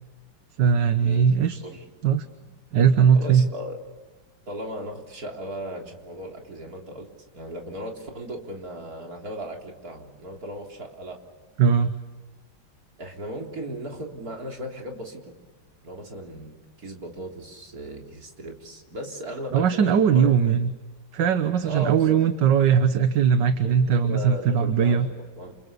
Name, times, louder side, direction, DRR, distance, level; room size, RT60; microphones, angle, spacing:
voice 1, 0.6-1.6 2.0-2.3 2.7-3.5 11.6-12.0 19.5-20.7 21.1-25.1, right 7 dB, 60° right, 9 dB, 1.7 m, -20 dB
voice 2, 3.1-3.8 4.5-7.1 7.3-11.2 13.0-15.3 15.8-20.3 21.6-22.2 23.6-25.6, equal, 45° right, 1 dB, 4.0 m, -36 dB
29.0 x 29.0 x 6.9 m, 1.2 s
omnidirectional pair, 2.2 m